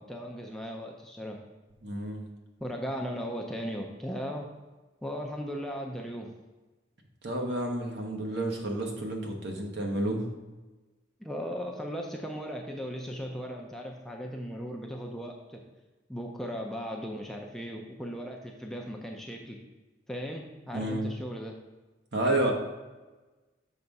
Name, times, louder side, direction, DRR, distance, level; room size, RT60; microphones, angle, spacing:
voice 1, 0.0-1.4 2.6-4.5 5.0-6.3 11.2-15.6 16.1-19.6 20.1-21.6, equal, ahead, 0 dB, 0.5 m, -37 dB
voice 2, 1.8-2.2 7.2-10.2 20.7-21.1 22.1-22.5, right 1 dB, 60° right, 2 dB, 1.1 m, -30 dB
6.9 x 3.5 x 5.3 m, 1.2 s
head